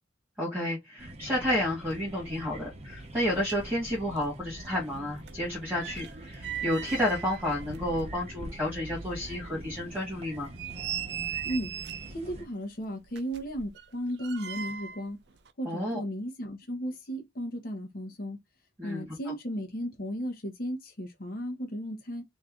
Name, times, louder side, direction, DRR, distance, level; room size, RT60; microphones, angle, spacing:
voice 1, 0.4-10.5 15.6-16.0 18.8-19.0, left 1 dB, 10° right, 1.7 m, -31 dB
sound 1, 1.0-12.4, right 1 dB, 35° right, 0.8 m, -44 dB
sound 2, 3.1-3.2 3.4-4.4 4.7-8.6 9.0-9.1 9.6-9.7 10.3-12.2 13.1-15.1 15.4-15.5, right 9 dB, 60° right, 0.5 m, -39 dB
voice 2, 12.1-15.2 15.6-18.4 18.8-22.2, equal, 50° left, 0.9 m, -35 dB
3.2 x 2.7 x 3.7 m
head